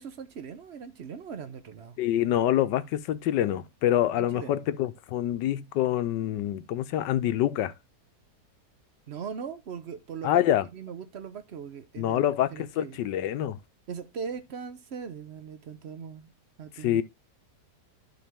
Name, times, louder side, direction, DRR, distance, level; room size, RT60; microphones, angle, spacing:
voice 1, 0.0-2.0 4.2-4.6 9.1-10.5 10.7-12.2 12.5-13.0 13.9-16.3 16.6-17.0, right 6 dB, 55° right, 0.7 m, -40 dB
voice 2, 2.0-7.7 10.2-10.6 12.0-13.6 16.8-17.0, left 12 dB, 90° left, 1.3 m, -26 dB
11.5 x 4.1 x 3.5 m
omnidirectional pair, 1.9 m